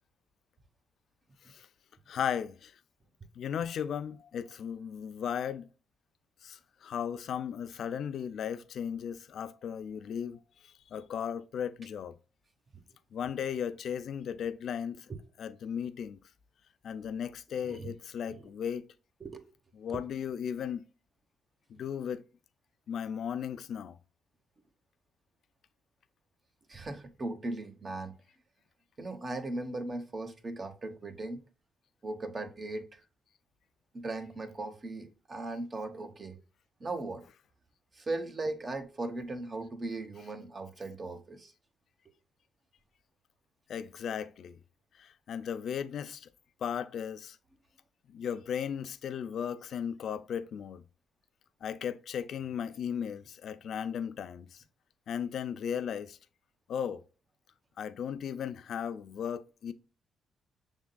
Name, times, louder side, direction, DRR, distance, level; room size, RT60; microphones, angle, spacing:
voice 1, 2.1-2.7 3.3-5.7 6.4-10.4 10.6-12.2 13.1-15.1 15.4-16.2 16.8-18.9 19.8-20.8 21.7-22.2 22.9-24.0 43.7-44.6 45.0-46.3 46.6-47.4 48.1-50.8 51.6-54.6 55.1-56.2 56.7-57.0 57.8-59.7, left 8 dB, 65° left, 0.4 m, -36 dB
voice 2, 26.7-28.1 29.0-31.4 32.0-32.9 33.9-36.3 36.8-37.2 38.0-41.5, right 2 dB, 30° right, 0.9 m, -38 dB
6.3 x 3.6 x 2.2 m
cardioid pair, 90°, 0 cm